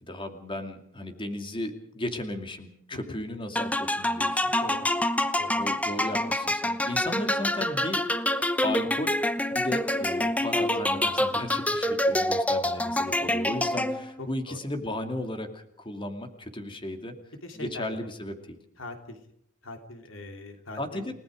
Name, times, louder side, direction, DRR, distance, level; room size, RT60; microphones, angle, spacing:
voice 1, 0.0-4.5 5.6-8.0 8.6-9.1 9.5-17.1 17.5-18.6 20.8-21.2, left 1 dB, 25° left, 6 dB, 2.6 m, -35 dB
sound 1, 3.6-14.2, left 1 dB, 5° left, 1.0 m, -26 dB
voice 2, 14.2-14.6 17.4-18.0 18.8-19.2 19.6-21.2, left 2 dB, 80° left, 6 dB, 3.2 m, -41 dB
29.5 x 18.5 x 5.1 m, 0.70 s
head